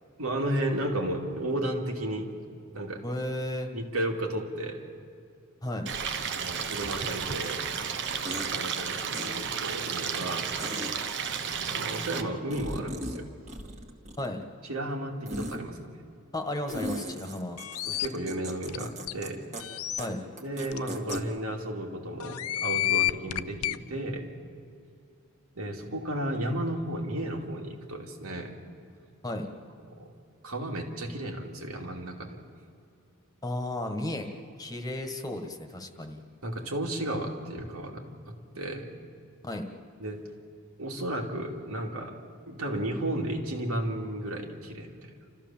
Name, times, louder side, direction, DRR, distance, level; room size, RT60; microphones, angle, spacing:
voice 1, 0.2-2.3 2.7-3.0 3.7-4.9 6.3-7.6 8.4-10.5 11.4-13.3 14.6-15.8 17.9-19.4 20.4-24.3 25.5-28.6 29.9-30.1 30.4-32.4 36.4-38.9 40.0-40.2 40.8-42.2 42.5-45.1, right 1 dB, 80° right, 1 dB, 2.7 m, -33 dB
voice 2, 3.0-3.7 5.6-5.9 14.2-14.4 16.3-17.6 20.0-20.2 29.2-29.5 33.4-34.3 34.6-36.2 39.4-39.6, left 1 dB, 15° left, 5 dB, 1.5 m, -33 dB
Stream, 5.9-12.2, right 6 dB, 55° right, 1.1 m, -32 dB
sound 1, 8.3-8.5 9.1-9.3 10.6-10.9 12.5-13.2 13.5-14.4 15.3-15.6 16.7-19.3 19.5-19.6 20.0-20.1 20.4-21.2, right 1 dB, 30° right, 2.0 m, -37 dB
sound 2, 17.6-18.1 18.7-18.8 19.1-19.2 19.6-20.0 20.7-20.8 21.1-21.2 22.2-23.8, left 15 dB, 85° left, 0.6 m, -29 dB
29.5 x 14.5 x 7.4 m, 2.5 s
head